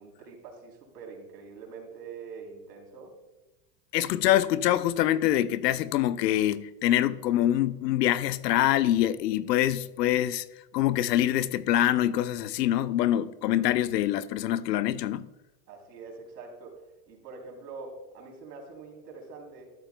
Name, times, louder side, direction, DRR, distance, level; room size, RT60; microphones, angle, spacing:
voice 1, 0.0-3.1 15.7-16.8 17.1-19.7, right 4 dB, 90° right, 3.5 m, -44 dB
voice 2, 3.9-10.4 10.7-15.3, left 12 dB, 80° left, 0.7 m, -25 dB
13.0 x 11.5 x 2.2 m
supercardioid pair, 145°, 47 cm